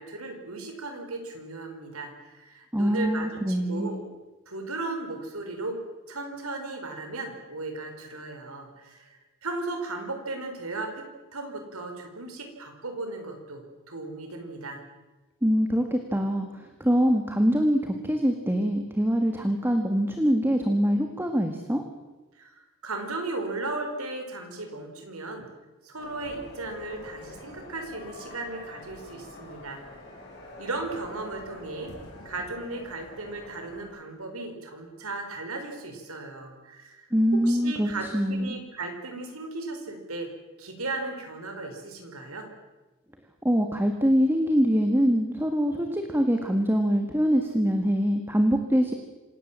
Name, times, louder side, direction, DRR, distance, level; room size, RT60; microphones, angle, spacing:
voice 1, 0.0-4.0 4.5-5.8 6.1-11.1 11.3-14.8 22.4-25.5 25.8-29.8 30.6-31.9 32.2-37.1 37.4-40.3 40.6-42.5, right 2 dB, 90° right, 5 dB, 4.9 m, -36 dB
voice 2, 2.7-4.0 15.4-21.8 37.1-38.5 43.4-48.9, equal, 10° right, 5 dB, 1.6 m, -24 dB
sound 1, 26.0-33.8, left 1 dB, 50° left, 7.7 m, -46 dB
26.5 x 17.5 x 7.4 m, 1.2 s
head